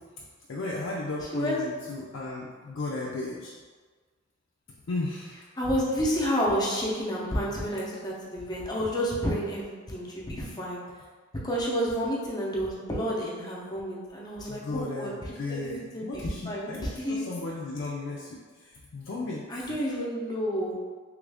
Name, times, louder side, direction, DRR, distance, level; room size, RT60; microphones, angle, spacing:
voice 1, 0.5-3.5 4.9-5.4 14.5-19.5, left 2 dB, 75° left, -5 dB, 0.4 m, -35 dB
voice 2, 5.6-10.8 11.4-17.2 19.5-20.8, equal, 20° left, -5 dB, 0.7 m, -30 dB
3.1 x 2.5 x 3.4 m, 1.5 s
head